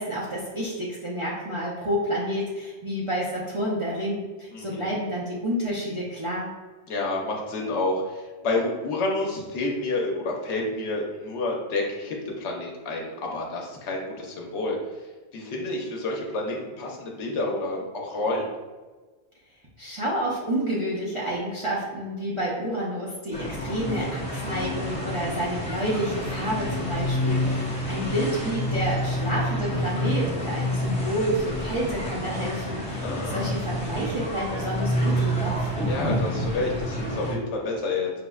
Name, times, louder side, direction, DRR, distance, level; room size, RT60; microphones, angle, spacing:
voice 1, 0.0-6.5 19.8-35.7, equal, 40° right, -6 dB, 0.4 m, -29 dB
voice 2, 4.5-5.0 6.9-14.8 15.3-18.5 33.0-33.5 35.9-38.1, left 2 dB, 85° left, -1 dB, 0.9 m, -29 dB
sound 1, 23.3-37.3, equal, 10° left, 0.5 m, -28 dB
5.0 x 2.0 x 2.3 m, 1.3 s
omnidirectional pair, 1.1 m